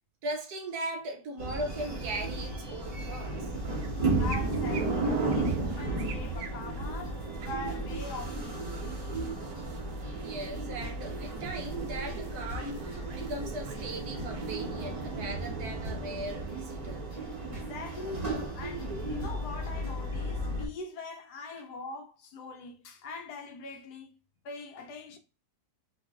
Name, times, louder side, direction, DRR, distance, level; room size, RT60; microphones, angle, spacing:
voice 1, 0.2-3.5 10.2-17.0, right 2 dB, 70° right, 1.1 m, -38 dB
sound 1, 1.4-20.7, right 2 dB, 45° right, 0.5 m, -34 dB
sound 2, 3.7-15.7, right 3 dB, 85° right, 0.6 m, -48 dB
voice 2, 4.1-8.8 17.5-24.2 24.4-25.2, left 3 dB, 75° left, 1.0 m, -42 dB
sound 3, 6.6-20.1, left 2 dB, 20° right, 1.1 m, -47 dB
3.9 x 2.9 x 2.3 m
omnidirectional pair, 1.9 m